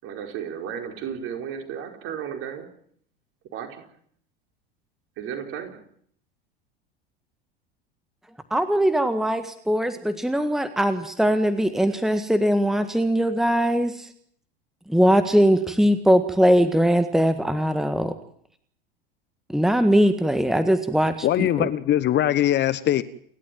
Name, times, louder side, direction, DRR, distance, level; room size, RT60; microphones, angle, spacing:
voice 1, 0.0-2.7 3.5-3.9 5.2-5.8, right 8 dB, 50° right, 4.8 m, -34 dB
voice 2, 8.5-14.1 14.9-18.1 19.5-21.7, equal, ahead, 1.6 m, -21 dB
voice 3, 21.2-23.0, left 12 dB, 35° left, 1.2 m, -21 dB
29.5 x 12.5 x 9.2 m
figure-of-eight pair, 80°, 29 cm